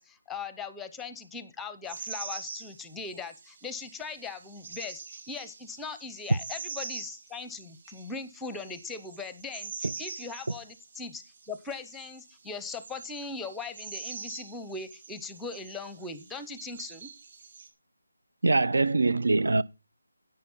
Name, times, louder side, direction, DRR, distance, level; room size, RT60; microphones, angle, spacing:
voice 1, 0.0-5.0 5.3-17.1, left 4 dB, 5° left, 0.7 m, -40 dB
sound 1, 1.9-17.7, right 4 dB, 40° right, 3.8 m, -44 dB
voice 2, 18.4-19.6, right 3 dB, 70° right, 0.8 m, -23 dB
10.5 x 8.8 x 5.5 m
figure-of-eight pair, 170°, 0 cm